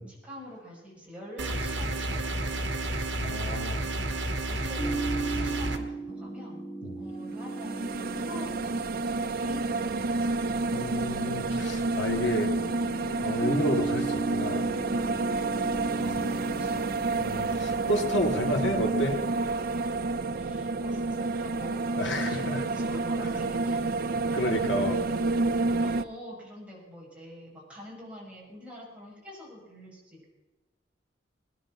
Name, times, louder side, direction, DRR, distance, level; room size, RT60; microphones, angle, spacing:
voice 1, 0.1-3.7 4.2-6.6 7.0-10.3 15.6-16.8 20.3-24.6 24.9-25.0 25.8-30.3, left 1 dB, 5° right, -4 dB, 6.2 m, -46 dB
sound 1, 1.4-5.8, right 1 dB, 80° right, 2.0 m, -31 dB
voice 2, 3.2-4.1 6.8-7.0 10.7-12.6 13.2-14.6 16.0-16.3 17.1-19.2 22.0-22.6 23.2-23.4 24.3-25.2, equal, 75° left, 3 dB, 2.4 m, -31 dB
sound 2, 4.6-19.7, right 3 dB, 25° left, 3.6 m, -37 dB
sound 3, 7.3-26.0, right 3 dB, 55° right, 0.7 m, -29 dB
21.0 x 10.5 x 6.0 m, 1.2 s
head